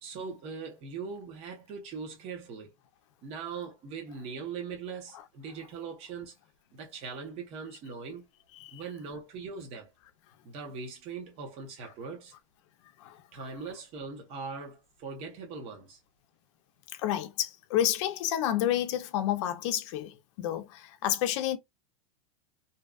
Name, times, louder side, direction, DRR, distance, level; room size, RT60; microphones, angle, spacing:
voice 1, 0.0-2.7 3.2-6.3 6.7-8.2 8.7-9.9 10.4-12.3 13.3-16.0, right 5 dB, 35° right, 0.9 m, -40 dB
voice 2, 17.0-21.6, left 11 dB, 55° left, 0.6 m, -30 dB
2.7 x 2.3 x 2.3 m
supercardioid pair, 150°, 18 cm